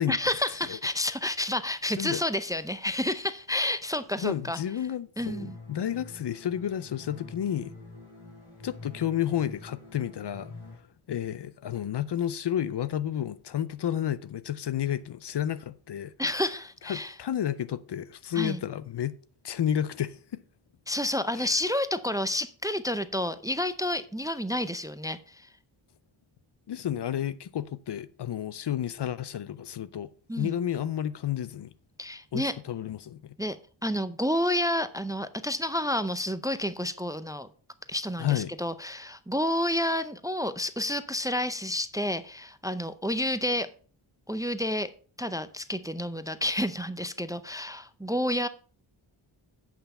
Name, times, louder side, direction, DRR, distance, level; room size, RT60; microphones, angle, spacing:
voice 1, 0.1-4.6 5.2-5.6 16.2-17.1 18.3-18.6 20.9-25.5 30.3-30.5 32.0-32.5 33.4-33.6 33.8-37.5 37.9-43.7 44.3-44.9 45.2-48.5, left 1 dB, 5° right, 0.5 m, -30 dB
voice 2, 4.2-7.7 8.6-10.5 11.1-16.1 16.9-19.1 19.4-20.2 21.4-21.5 26.7-30.1 30.4-31.7 32.3-33.4 38.2-38.5, left 10 dB, 55° left, 0.6 m, -31 dB
sound 1, 5.2-10.7, left 3 dB, 75° left, 5.0 m, -46 dB
9.0 x 5.7 x 5.4 m
wide cardioid pair, 95°, 49 cm